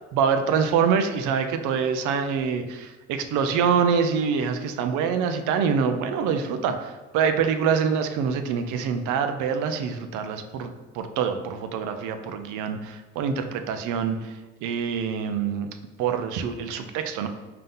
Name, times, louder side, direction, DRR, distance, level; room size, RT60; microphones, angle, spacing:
voice 1, 0.1-15.7 16.0-17.3, right 6 dB, 80° right, 7 dB, 0.5 m, -25 dB
3.7 x 2.8 x 3.7 m, 1.2 s
cardioid pair, 90°, 30 cm